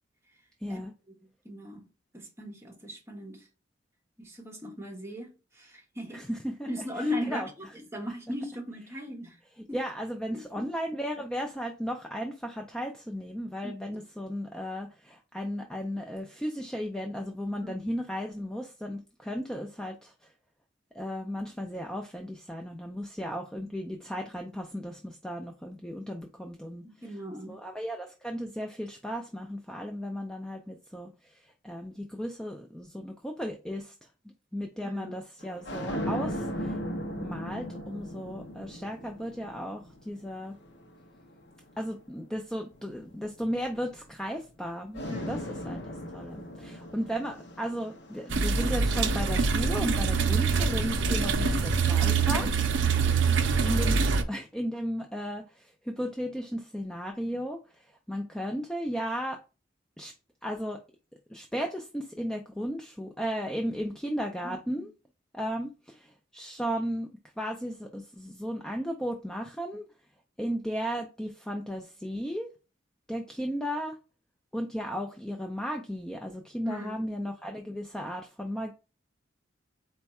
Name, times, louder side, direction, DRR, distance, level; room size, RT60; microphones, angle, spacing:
voice 1, 0.6-0.9 6.1-6.7 7.0-7.5 9.7-20.3 20.9-27.2 27.5-33.9 34.5-36.8 37.2-40.6 41.8-52.5 53.6-54.0 54.3-59.4 60.0-60.1 60.4-60.8 61.3-64.9 65.3-67.1 67.4-69.9 70.4-72.5 73.1-74.0 74.5-78.7, equal, 5° left, 0.3 m, -35 dB
voice 2, 1.4-1.8 2.1-3.4 4.2-6.2 6.7-7.7 7.9-9.4 9.7-9.8 10.3-10.7 13.6-13.7 17.6-17.7 26.8-27.6 34.8-35.2 45.1-45.4 46.6-46.8 52.3-52.6 64.4-64.8 76.6-77.0, left 1 dB, 15° right, 0.9 m, -38 dB
sound 1, 35.4-42.0 42.7-44.6 44.9-50.3 51.2-52.4, equal, 65° left, 0.6 m, -39 dB
sound 2, 48.3-54.2, right 5 dB, 75° right, 0.5 m, -25 dB
4.3 x 2.3 x 4.1 m
head